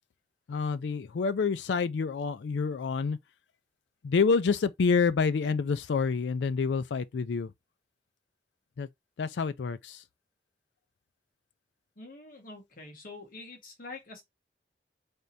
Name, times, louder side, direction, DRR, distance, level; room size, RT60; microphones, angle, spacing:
voice 1, 0.5-3.2 4.0-7.5 8.8-8.9 9.2-10.0, left 5 dB, 80° left, 0.4 m, -28 dB
voice 2, 12.0-14.2, left 3 dB, 55° left, 1.4 m, -45 dB
4.3 x 3.5 x 2.6 m
head